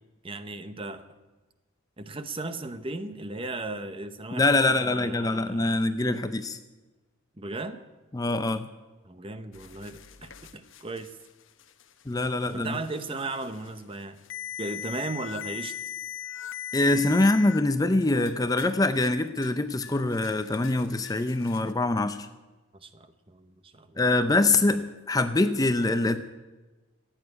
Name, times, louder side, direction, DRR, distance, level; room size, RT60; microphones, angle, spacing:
voice 1, 0.2-1.0 2.0-5.7 7.4-7.8 9.0-11.2 12.5-14.2 14.6-15.7 22.7-24.0 24.7-24.8, right 2 dB, 25° right, 11 dB, 0.8 m, -36 dB
voice 2, 4.3-6.6 8.1-8.7 12.1-12.8 16.7-22.3 24.0-26.2, left 2 dB, 15° left, 10 dB, 0.5 m, -24 dB
sound 1, 9.5-17.6 18.0-18.8 19.0-19.6 19.8-21.7, left 10 dB, 65° left, 0.9 m, -41 dB
15.5 x 9.1 x 9.5 m, 1.2 s
head